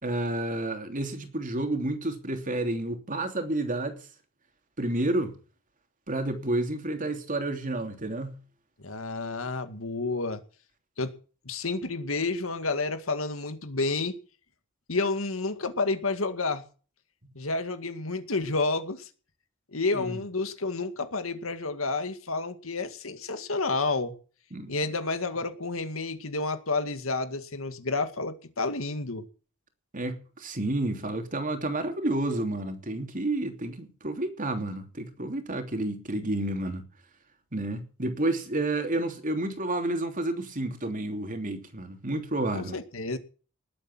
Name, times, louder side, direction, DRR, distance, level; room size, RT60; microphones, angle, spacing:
voice 1, 0.0-4.0 4.8-5.3 6.1-8.4 19.9-20.2 24.5-24.7 29.9-36.8 37.5-42.7, right 2 dB, 40° right, 3.1 m, -30 dB
voice 2, 8.8-10.4 11.0-11.1 11.5-14.2 14.9-16.6 17.4-19.1 19.7-24.2 24.7-29.2 42.5-43.2, left 3 dB, 80° left, 2.1 m, -30 dB
20.0 x 8.6 x 6.2 m
head